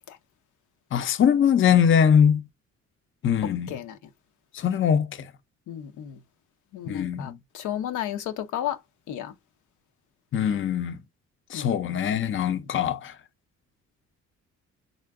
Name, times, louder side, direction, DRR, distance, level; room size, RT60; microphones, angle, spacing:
voice 1, 0.9-2.4 3.2-3.7 4.5-5.1 6.9-7.4 10.3-11.0 11.5-13.1, left 8 dB, 40° left, 0.6 m, -22 dB
voice 2, 5.7-6.2 6.7-8.8 9.1-9.3 11.5-12.0, left 11 dB, 80° left, 0.7 m, -33 dB
3.7 x 2.2 x 3.5 m
cardioid pair, 90°, 30 cm